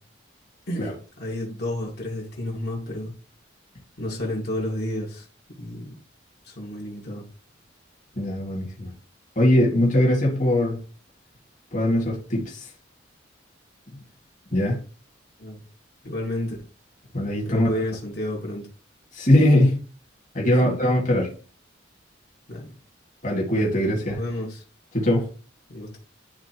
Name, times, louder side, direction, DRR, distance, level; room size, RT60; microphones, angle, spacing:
voice 1, 1.2-3.1 4.0-5.1 5.6-5.9 6.6-7.2 15.4-15.5 16.1-16.5 17.5-18.6 22.5-22.6 24.2-24.5 25.7-26.0, left 1 dB, 60° left, 2.1 m, -30 dB
voice 2, 8.2-8.9 9.4-10.8 11.7-12.7 14.5-14.8 17.1-17.8 19.1-19.8 20.3-21.3 23.2-24.2 24.9-25.3, left 1 dB, 45° left, 2.2 m, -21 dB
11.0 x 3.8 x 3.0 m
head